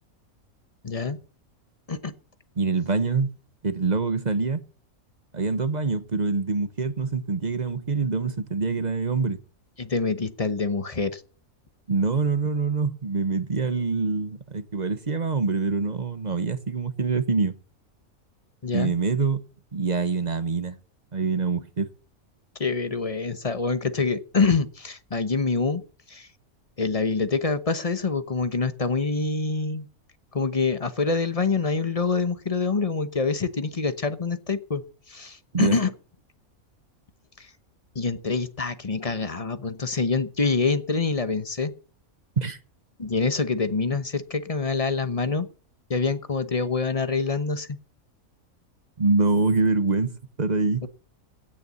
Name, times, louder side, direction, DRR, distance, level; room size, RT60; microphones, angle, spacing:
voice 1, 0.8-1.2 1.9-2.1 9.8-11.2 18.6-18.9 22.6-25.8 26.1-26.3 26.8-29.9 30.3-34.8 35.1-35.9 37.4-37.5 37.9-41.7 43.0-45.5 45.9-47.8, left 4 dB, 30° left, 0.9 m, -26 dB
voice 2, 2.6-3.3 3.6-4.6 5.3-9.4 11.9-17.5 18.7-19.4 19.7-20.8 21.1-21.9 35.5-35.8 42.4-42.6 49.0-50.8, right 4 dB, 35° right, 1.0 m, -25 dB
16.5 x 6.9 x 7.0 m
omnidirectional pair, 1.5 m